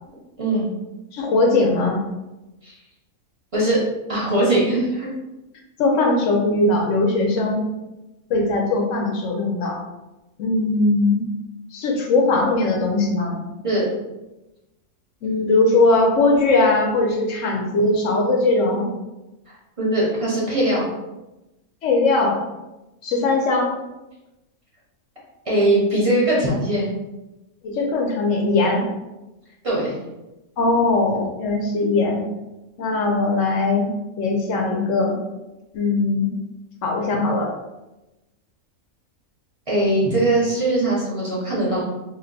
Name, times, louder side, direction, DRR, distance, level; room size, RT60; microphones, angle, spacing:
voice 1, 0.4-0.7 2.6-2.7 3.5-3.8 4.1-5.1 13.6-13.9 19.8-20.9 25.5-26.9 29.6-29.9 39.7-41.8, right 1 dB, 30° right, -6 dB, 0.6 m, -20 dB
voice 2, 1.1-2.0 5.8-7.7 8.3-9.8 10.4-11.2 11.7-13.4 15.2-18.9 21.8-22.4 23.0-23.7 27.6-28.9 30.6-32.2 32.8-33.9 34.2-35.2 35.7-36.3 36.8-37.5, left 2 dB, 65° left, 1 dB, 0.9 m, -20 dB
2.8 x 2.1 x 3.9 m, 1.0 s
omnidirectional pair, 1.6 m